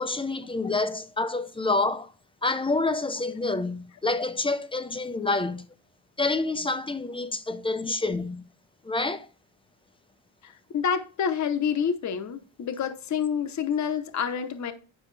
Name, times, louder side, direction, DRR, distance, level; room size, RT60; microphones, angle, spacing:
voice 1, 0.0-2.1 2.4-5.7 6.2-8.4 8.8-9.3, left 3 dB, 10° left, 0.4 m, -28 dB
voice 2, 10.4-14.7, left 7 dB, 35° left, 0.8 m, -28 dB
9.8 x 6.2 x 3.2 m
cardioid pair, 165°, 48 cm